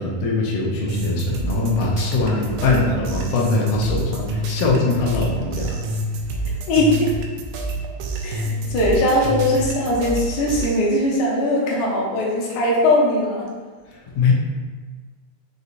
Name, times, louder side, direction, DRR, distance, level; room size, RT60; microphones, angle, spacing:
voice 1, 0.0-5.8 13.9-14.3, left 3 dB, 90° left, -3 dB, 1.4 m, -22 dB
sound 1, 0.9-10.8, right 1 dB, 80° right, 2.0 m, -27 dB
voice 2, 6.7-7.1 8.2-13.4, left 1 dB, 70° left, -4 dB, 2.1 m, -20 dB
6.3 x 2.7 x 2.5 m, 1.4 s
omnidirectional pair, 3.9 m